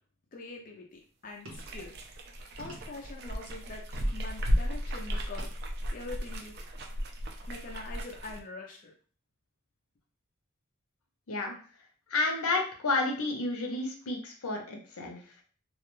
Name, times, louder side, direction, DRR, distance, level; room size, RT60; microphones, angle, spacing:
voice 1, 0.3-2.0 2.6-5.5 5.9-6.6 7.5-8.9, left 3 dB, 40° left, 0 dB, 0.4 m, -44 dB
sound 1, 1.5-8.4, equal, 50° right, 0.4 m, -34 dB
sound 2, 1.5-1.8 2.6-3.1 3.9-4.3 5.4-5.6 6.3-6.4, right 1 dB, 75° right, 0.8 m, -47 dB
voice 2, 11.3-11.6 12.1-15.2, left 3 dB, 80° left, 2 dB, 0.6 m, -31 dB
2.3 x 2.1 x 3.0 m, 0.41 s
head